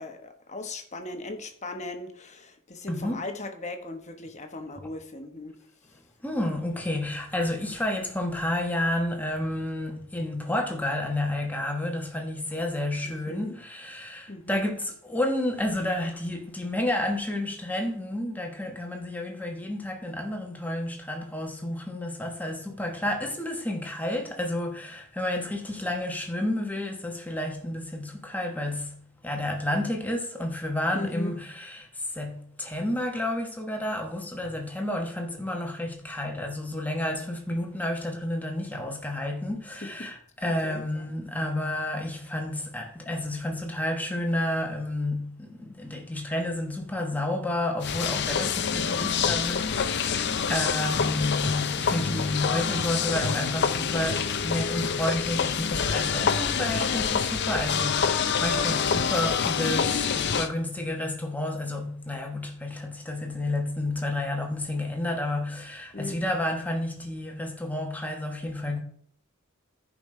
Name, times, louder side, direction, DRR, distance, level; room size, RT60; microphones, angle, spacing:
voice 1, 0.0-5.6 5.9-6.0 13.0-13.5 14.3-14.7 30.9-31.3 39.8-40.1 40.4-40.8 65.9-66.2, left 2 dB, 35° left, 1.2 m, -38 dB
voice 2, 2.9-3.2 6.2-68.8, left 1 dB, 10° left, 1.1 m, -30 dB
sound 1, 47.8-60.5, left 6 dB, 55° left, 0.6 m, -26 dB
14.5 x 5.2 x 3.2 m
head